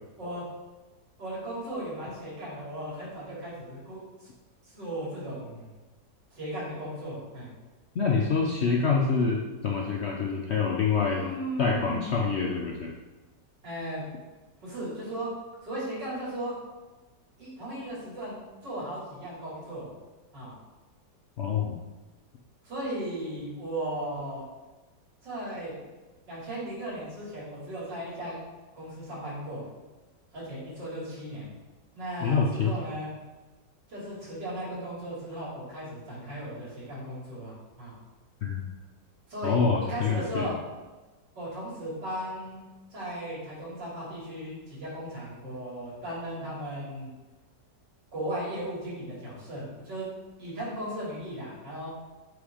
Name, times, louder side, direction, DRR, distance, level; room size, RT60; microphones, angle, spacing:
voice 1, 1.2-4.3 4.6-5.7 6.3-7.5 11.0-12.2 13.6-14.0 14.6-15.3 15.6-16.5 17.4-19.9 20.3-20.5 22.6-24.4 25.2-25.7 26.3-28.4 28.7-29.6 30.3-31.5 31.9-33.1 33.9-37.9 39.3-39.5 39.8-40.5 41.3-47.1 48.1-50.1 50.4-51.9, right 1 dB, 85° right, -6 dB, 3.3 m, -36 dB
voice 2, 7.9-11.2 11.6-12.9 21.4-21.8 32.2-32.7 38.4-38.6 39.4-40.5, left 5 dB, 65° left, -1 dB, 0.6 m, -26 dB
8.0 x 3.4 x 4.9 m, 1.2 s
omnidirectional pair, 1.9 m